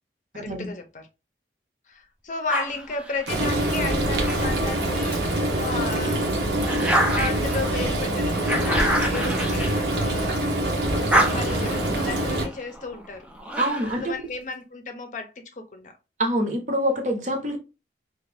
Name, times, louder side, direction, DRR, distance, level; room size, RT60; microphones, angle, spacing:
voice 1, 0.3-1.1 1.9-6.2 7.1-13.3 14.0-16.0, left 3 dB, 45° left, 0.6 m, -34 dB
sound 1, 2.5-5.2 5.7-10.5 10.8-14.1, right 1 dB, 5° right, 0.4 m, -29 dB
Frying (food), 3.3-12.5, right 1 dB, 80° right, 0.9 m, -25 dB
voice 2, 13.6-14.1 16.2-17.6, equal, 45° right, 0.8 m, -25 dB
2.9 x 2.5 x 3.3 m
head